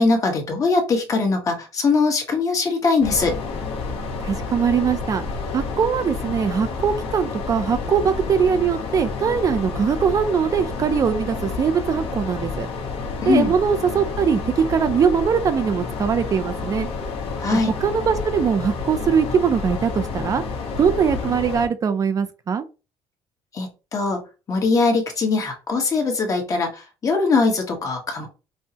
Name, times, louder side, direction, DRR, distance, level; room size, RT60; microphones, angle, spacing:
voice 1, 0.0-3.4 13.2-13.5 17.4-17.7 23.5-24.2 24.5-28.3, left 4 dB, 30° left, 3 dB, 1.2 m, -21 dB
sound 1, 3.0-21.7, left 4 dB, 65° left, 1.1 m, -30 dB
voice 2, 4.2-5.2 5.5-12.7 13.3-16.9 17.5-20.4 20.8-22.6, right 7 dB, 35° right, 10 dB, 0.4 m, -21 dB
5.4 x 2.1 x 2.8 m, 0.31 s
cardioid pair, 130°, 10 cm